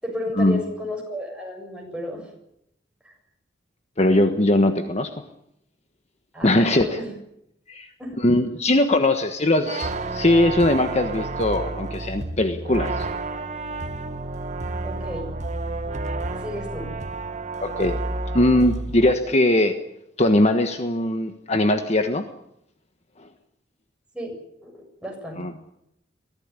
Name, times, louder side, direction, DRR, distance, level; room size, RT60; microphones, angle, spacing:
voice 1, 0.0-2.3 3.0-3.1 6.3-7.2 8.0-8.2 14.8-15.3 16.4-16.9 24.1-24.3 24.6-24.7 25.0-25.4, left 1 dB, 5° right, 0 dB, 7.5 m, -33 dB
voice 2, 4.0-5.1 6.4-7.0 7.7-7.9 8.2-13.1 17.6-18.0 18.3-19.8 20.2-22.3 25.4-25.5, left 1 dB, 40° left, 7 dB, 1.4 m, -20 dB
sound 1, 9.7-19.1, right 2 dB, 40° right, 1.2 m, -30 dB
23.0 x 16.0 x 9.9 m, 0.78 s
head